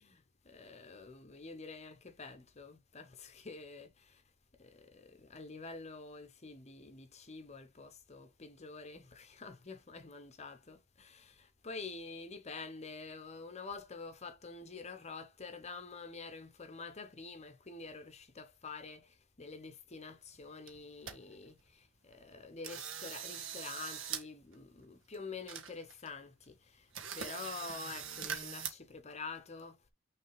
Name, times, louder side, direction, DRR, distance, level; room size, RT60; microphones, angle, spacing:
voice 1, 0.4-4.2 4.5-29.8, left 4 dB, 35° left, 0.8 m, -47 dB
sound 1, 20.3-20.4 20.7-21.1 21.6-21.7 22.1-22.3 22.6-24.2 24.5-24.6 25.1-25.2 25.5-26.1 26.4-26.5 26.9-28.7, right 7 dB, 65° right, 1.4 m, -42 dB
6.2 x 3.3 x 4.7 m
head